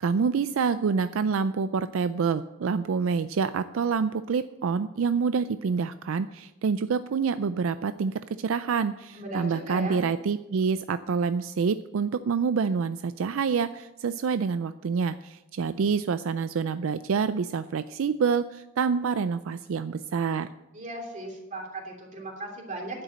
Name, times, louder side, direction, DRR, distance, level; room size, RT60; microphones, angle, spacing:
voice 1, 0.0-20.5, right 5 dB, 75° right, 12 dB, 0.4 m, -27 dB
voice 2, 9.1-10.0 20.7-23.0, right 2 dB, 40° right, 1 dB, 2.9 m, -37 dB
10.5 x 7.9 x 7.7 m, 0.98 s
head